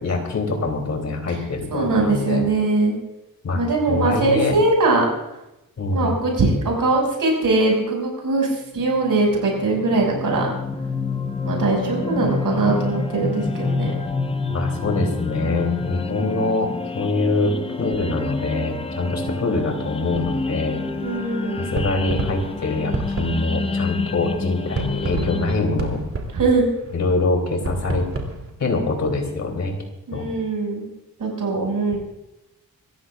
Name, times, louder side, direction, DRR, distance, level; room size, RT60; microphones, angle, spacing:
voice 1, 0.0-2.4 3.4-3.6 3.9-4.6 5.8-6.2 14.5-20.8 21.6-26.0 26.9-28.0 28.6-29.7 30.1-30.2, left 3 dB, 50° left, 3 dB, 3.0 m, -24 dB
voice 2, 1.7-3.0 3.5-5.1 5.9-10.5 11.4-13.9 16.1-16.4 21.0-21.7 26.3-26.7 30.1-30.9 31.2-32.0, right 3 dB, 70° right, 0 dB, 5.7 m, -21 dB
sound 1, 8.8-25.5, left 3 dB, 15° left, 0.7 m, -28 dB
sound 2, 20.1-28.5, right 3 dB, 40° right, 2.5 m, -31 dB
26.5 x 14.5 x 2.4 m, 0.93 s
wide cardioid pair, 160°, 35 cm